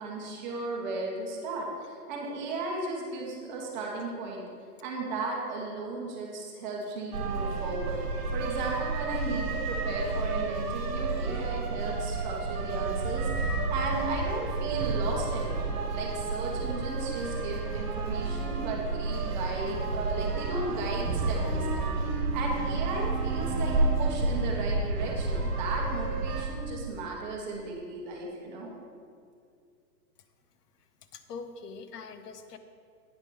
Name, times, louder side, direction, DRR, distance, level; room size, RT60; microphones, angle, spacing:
voice 1, 0.0-4.4 4.8-8.0 8.3-28.7, right 2 dB, 30° right, -1 dB, 1.1 m, -35 dB
sound 1, 7.1-26.4, right 3 dB, 60° right, 1.5 m, -30 dB
voice 2, 31.1-32.6, left 5 dB, 70° left, 9 dB, 0.8 m, -43 dB
9.0 x 4.8 x 5.4 m, 2.3 s
hypercardioid pair, 160°, 49 cm